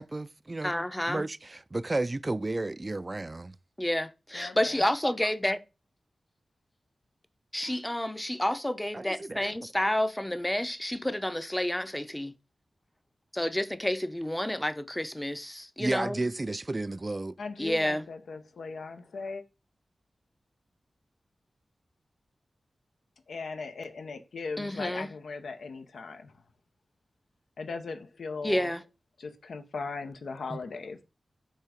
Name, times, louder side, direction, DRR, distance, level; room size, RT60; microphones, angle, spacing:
voice 1, 0.0-0.7 1.1-3.5 8.9-9.5 15.8-17.4 30.5-30.6, right 2 dB, 30° right, 0.3 m, -32 dB
voice 2, 0.6-1.2 3.8-5.6 7.5-12.3 13.3-16.2 17.6-18.1 24.6-25.1 28.4-28.8, left 1 dB, 10° left, 0.6 m, -30 dB
voice 3, 4.3-4.8 17.4-19.4 23.3-26.3 27.6-28.7 29.2-31.0, left 4 dB, 90° left, 0.7 m, -38 dB
5.6 x 3.7 x 5.0 m
wide cardioid pair, 70°, 0 cm